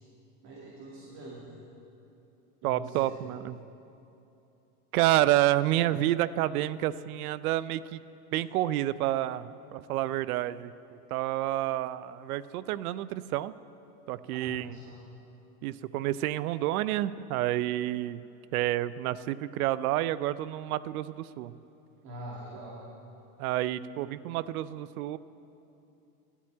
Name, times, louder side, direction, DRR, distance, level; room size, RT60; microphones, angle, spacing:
voice 1, 0.4-1.5 2.6-3.2 14.3-15.1 22.0-22.8, right 1 dB, 40° right, -4 dB, 2.5 m, -43 dB
voice 2, 2.6-3.6 4.9-8.0 8.3-10.7 11.1-13.5 14.1-14.8 15.6-18.2 18.5-21.6 23.4-25.2, right 14 dB, 70° right, 17 dB, 0.6 m, -29 dB
13.5 x 8.4 x 8.7 m, 2.8 s
supercardioid pair, 140°, 45 cm